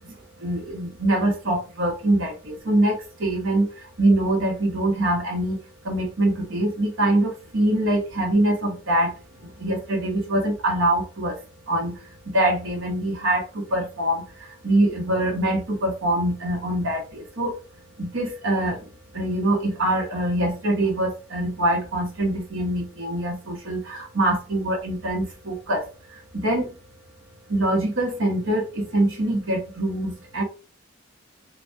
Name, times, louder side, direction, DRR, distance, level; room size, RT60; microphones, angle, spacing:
voice 1, 0.0-5.6 5.8-9.1 9.4-11.4 11.7-17.5 18.0-25.8 26.1-26.8 27.5-30.4, right 1 dB, 75° right, 0 dB, 1.0 m, -24 dB
3.5 x 2.4 x 2.6 m, 0.34 s
head